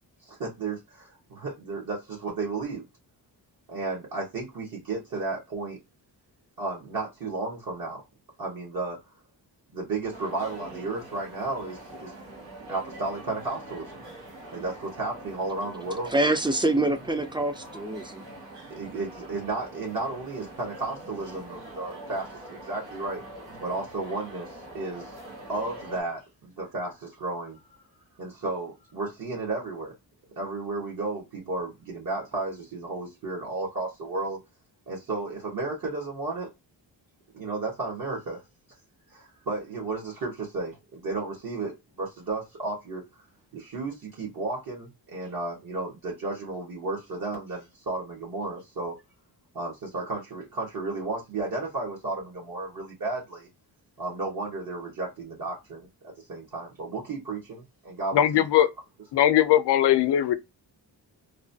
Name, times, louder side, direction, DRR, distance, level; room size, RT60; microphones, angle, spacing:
voice 1, 0.2-2.8 3.7-5.8 6.6-8.0 8.4-9.0 9.7-12.1 12.7-14.0 14.5-16.1 18.7-23.2 23.6-25.1 25.5-27.6 28.2-29.9 30.4-34.4 34.9-36.5 37.3-38.4 39.1-43.0 43.5-48.9 49.5-53.5 54.0-58.4, right 3 dB, 55° right, 1.2 m, -33 dB
sound 1, 10.1-26.0, right 1 dB, 90° right, 1.2 m, -44 dB
voice 2, 16.1-18.3, right 2 dB, 10° right, 0.3 m, -25 dB
voice 3, 58.1-58.7 59.1-60.3, left 11 dB, 75° left, 0.5 m, -20 dB
3.0 x 2.1 x 2.6 m
cardioid pair, 85°, 42 cm